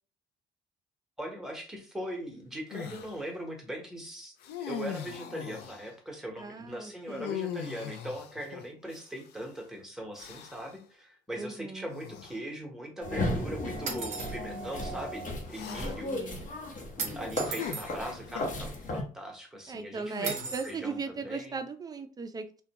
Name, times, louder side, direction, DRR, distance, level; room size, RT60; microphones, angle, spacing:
voice 1, 1.2-4.3 4.6-16.1 16.9-21.6, right 1 dB, 5° right, 0 dB, 0.8 m, -40 dB
sound 1, 2.7-3.2 4.4-5.9 7.1-9.4 10.2-10.8 11.9-12.4 13.2-13.4 15.5-16.2 17.4-18.5 20.0-20.9, left 9 dB, 75° left, 0.4 m, -40 dB
voice 2, 6.4-7.3 11.4-11.9 15.7-16.5 19.7-22.6, right 4 dB, 20° right, 7 dB, 0.4 m, -38 dB
sound 2, 13.0-19.0, left 1 dB, 50° left, 0.8 m, -35 dB
sound 3, 13.9-14.4 17.0-17.9 20.2-20.7, right 5 dB, 45° right, 0.7 m, -36 dB
2.3 x 2.2 x 2.8 m, 0.39 s
cardioid pair, 110°, 17 cm